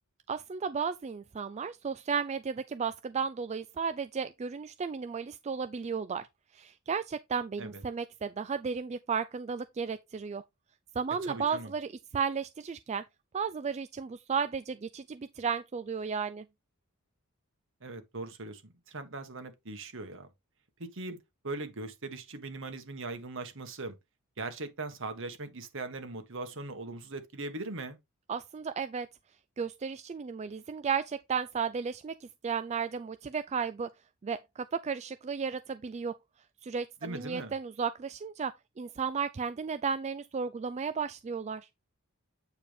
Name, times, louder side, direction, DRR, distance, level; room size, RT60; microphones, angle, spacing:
voice 1, 0.3-6.3 6.5-10.4 11.0-13.0 13.3-16.5 28.3-29.1 29.6-33.9 34.2-36.1 36.6-41.7, right 6 dB, 30° right, 0.3 m, -34 dB
voice 2, 11.2-11.7 17.8-20.3 20.8-21.2 21.4-24.0 24.4-28.0 37.0-37.5, right 2 dB, 60° right, 1.5 m, -40 dB
8.5 x 4.7 x 3.4 m
head